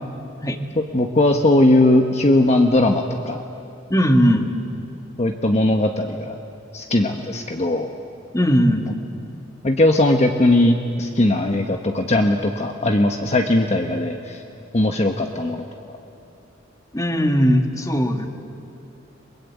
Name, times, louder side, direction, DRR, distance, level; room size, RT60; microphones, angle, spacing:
voice 1, 0.8-3.4 5.2-6.4 6.7-7.9 9.6-14.4 14.7-15.6, left 1 dB, 35° left, 4 dB, 1.1 m, -19 dB
voice 2, 3.9-4.5 8.3-8.9 16.9-18.3, equal, 15° left, 5 dB, 1.6 m, -18 dB
29.5 x 23.0 x 8.5 m, 2.6 s
head